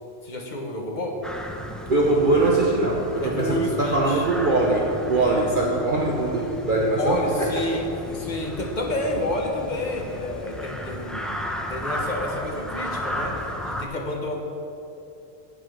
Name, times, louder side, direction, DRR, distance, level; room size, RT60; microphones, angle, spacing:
voice 1, 0.2-1.2 2.0-2.3 3.2-4.2 6.9-11.4 11.7-14.4, left 1 dB, 35° left, 0 dB, 1.3 m, -29 dB
sound 1, 1.2-13.8, equal, ahead, 0.4 m, -34 dB
voice 2, 1.9-7.5, right 2 dB, 45° right, -2 dB, 1.0 m, -22 dB
8.4 x 8.3 x 6.3 m, 2.8 s
omnidirectional pair, 1.4 m